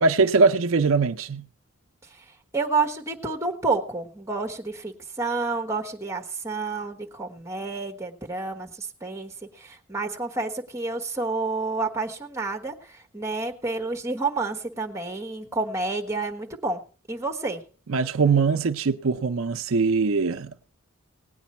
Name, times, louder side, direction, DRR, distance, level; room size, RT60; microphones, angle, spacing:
voice 1, 0.0-1.5 17.9-20.5, right 4 dB, 70° right, 0.6 m, -22 dB
voice 2, 2.0-16.8 17.1-17.6, right 3 dB, 15° right, 1.4 m, -29 dB
18.5 x 9.2 x 4.3 m
head